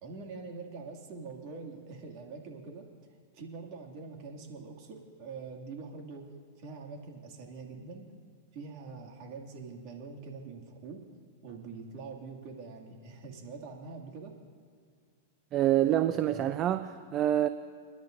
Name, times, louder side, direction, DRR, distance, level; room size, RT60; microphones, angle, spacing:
voice 1, 0.0-2.9 3.3-6.3 6.5-8.1 8.5-11.0 11.4-14.3, right 4 dB, 50° right, 2.3 m, -44 dB
voice 2, 15.5-17.5, right 12 dB, 35° right, 0.4 m, -26 dB
29.5 x 10.5 x 2.6 m
hypercardioid pair, 125°, 0 cm